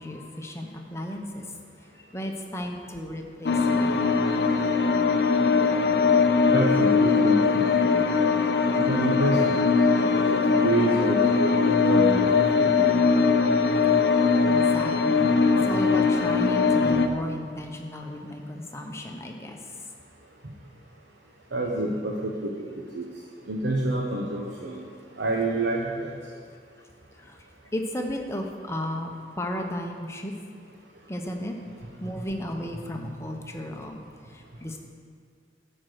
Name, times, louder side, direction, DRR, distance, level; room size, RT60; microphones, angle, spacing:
voice 1, 0.0-1.4 1.9-4.1 14.4-19.6 27.2-27.4 27.7-30.3 31.1-31.5 32.0-34.0 34.3-34.8, left 1 dB, 15° left, 2 dB, 0.8 m, -34 dB
sound 1, 3.5-17.1, left 4 dB, 60° left, 0.5 m, -21 dB
voice 2, 6.5-8.0 8.7-9.6 10.1-10.2 10.6-13.0 16.9-17.0 21.5-22.5 22.9-23.0 23.5-24.8 25.2-26.2 32.2-32.3, right 2 dB, 85° right, -2 dB, 0.9 m, -28 dB
11.5 x 4.4 x 7.8 m, 2.1 s
head